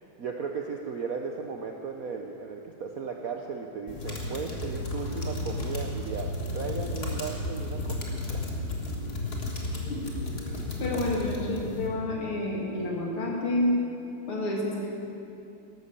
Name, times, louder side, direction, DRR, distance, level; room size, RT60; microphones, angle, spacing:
voice 1, 0.2-8.5, right 5 dB, 65° right, 3 dB, 0.9 m, -36 dB
sound 1, 3.9-11.9, left 2 dB, 30° left, 1.7 m, -33 dB
voice 2, 10.8-13.7 14.3-14.9, left 1 dB, 75° left, -3 dB, 3.4 m, -29 dB
13.0 x 12.0 x 6.7 m, 2.7 s
omnidirectional pair, 2.4 m